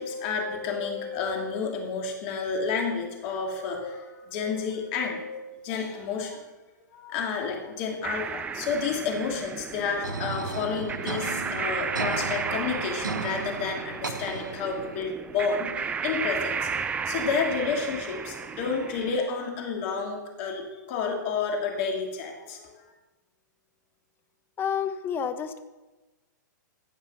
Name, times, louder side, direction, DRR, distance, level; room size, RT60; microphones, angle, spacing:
voice 1, 0.0-6.4 6.9-16.8 17.0-22.7, left 5 dB, 45° left, 2 dB, 2.4 m, -30 dB
sound 1, 8.0-19.2, right 6 dB, 15° right, 0.5 m, -34 dB
sound 2, 10.0-15.0, right 4 dB, 90° right, 1.2 m, -35 dB
voice 2, 24.6-25.7, left 7 dB, 20° left, 10 dB, 0.8 m, -29 dB
16.0 x 5.6 x 5.7 m, 1.2 s
hypercardioid pair, 120°, 10 cm